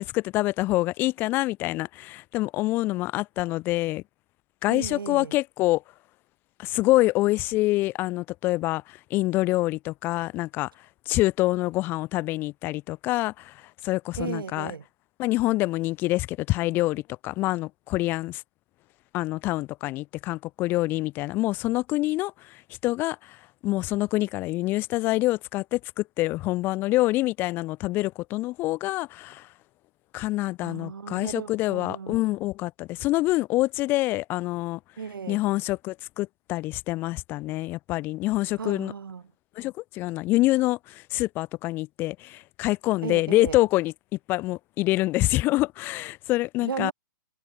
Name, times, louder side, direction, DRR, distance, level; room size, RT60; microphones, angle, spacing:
voice 1, 0.0-4.0 4.6-5.8 6.6-10.7 11.1-14.7 15.2-18.4 19.1-23.4 23.6-29.5 30.1-34.8 35.3-38.9 39.6-43.9 44.3-46.9, left 18 dB, 20° left, 0.3 m, -26 dB
voice 2, 4.7-5.3 14.2-14.8 30.6-32.2 35.0-35.4 38.6-39.2 43.0-43.6 46.6-46.9, right 6 dB, 75° right, 2.7 m, -35 dB
hypercardioid pair, 140°, 12 cm